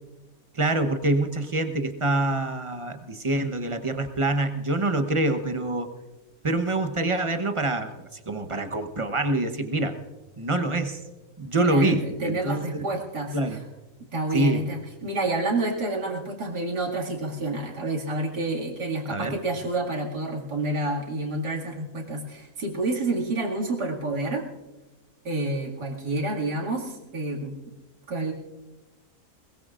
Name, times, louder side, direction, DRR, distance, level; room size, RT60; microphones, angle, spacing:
voice 1, 0.5-5.9 6.4-10.0 10.4-11.0 11.4-12.8 13.3-13.6 14.3-14.7 19.1-19.4, right 2 dB, 25° right, 7 dB, 0.8 m, -25 dB
voice 2, 11.7-13.4 14.1-24.5 25.2-27.5 28.1-28.3, right 2 dB, 80° right, -2 dB, 2.9 m, -29 dB
21.5 x 21.0 x 2.5 m, 1.1 s
omnidirectional pair, 1.7 m